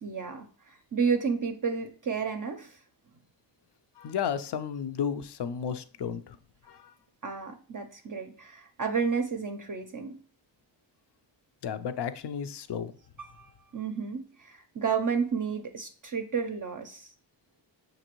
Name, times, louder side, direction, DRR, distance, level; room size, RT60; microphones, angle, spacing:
voice 1, 0.0-2.8 7.2-10.2 13.2-17.1, right 6 dB, 40° right, 4 dB, 0.5 m, -31 dB
voice 2, 4.0-6.4 6.7-6.9 11.6-12.9, left 7 dB, 60° left, 12 dB, 0.5 m, -33 dB
5.9 x 2.7 x 2.9 m, 0.42 s
cardioid pair, 50°, 48 cm